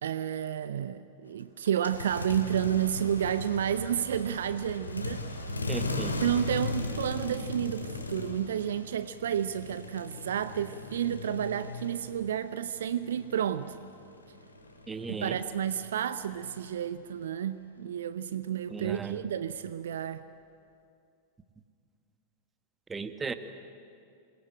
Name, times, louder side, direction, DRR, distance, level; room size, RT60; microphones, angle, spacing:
voice 1, 0.0-5.3 6.2-13.8 15.1-20.2, right 9 dB, 65° right, 14 dB, 0.7 m, -31 dB
sound 1, 1.7-12.5 12.7-16.9, left 2 dB, 80° left, 2.4 m, -38 dB
voice 2, 5.7-6.3 14.9-15.4 18.7-19.2 22.9-23.3, right 5 dB, 15° right, 9 dB, 1.5 m, -36 dB
27.0 x 21.0 x 9.0 m, 2.4 s
figure-of-eight pair, 90°, 0 cm